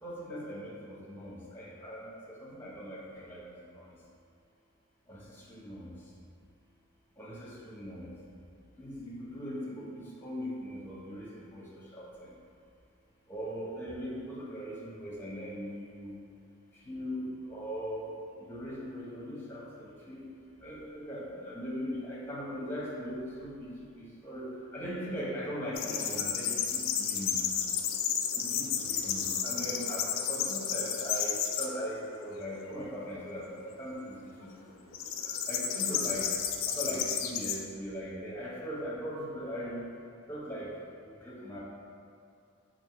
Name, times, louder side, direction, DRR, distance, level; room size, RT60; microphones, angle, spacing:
voice 1, 0.0-4.0 5.1-5.9 7.2-8.2 8.8-12.3 13.3-16.1 16.7-18.2 18.5-20.3 20.6-27.4 28.4-34.5 34.8-34.9 35.2-36.3 36.7-39.9 40.3-40.7 41.0-41.6, equal, 10° left, -6 dB, 0.7 m, -40 dB
sound 1, 25.7-31.7 32.2-32.7 34.9-37.6, left 8 dB, 85° left, 0.4 m, -32 dB
3.4 x 2.6 x 4.4 m, 2.4 s
head